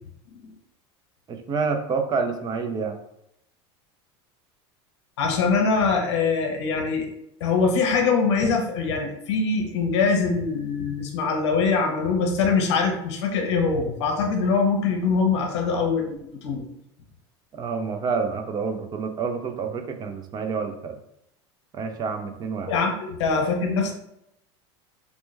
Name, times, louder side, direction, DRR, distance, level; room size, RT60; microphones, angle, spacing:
voice 1, 1.3-3.0 17.5-21.0 21.7-22.7, right 5 dB, 30° right, 6 dB, 0.4 m, -28 dB
voice 2, 5.2-7.1 7.4-16.1 16.4-16.6 22.7-23.9, left 4 dB, 85° left, 2 dB, 0.9 m, -23 dB
4.3 x 2.1 x 3.2 m, 0.79 s
supercardioid pair, 120°, 14 cm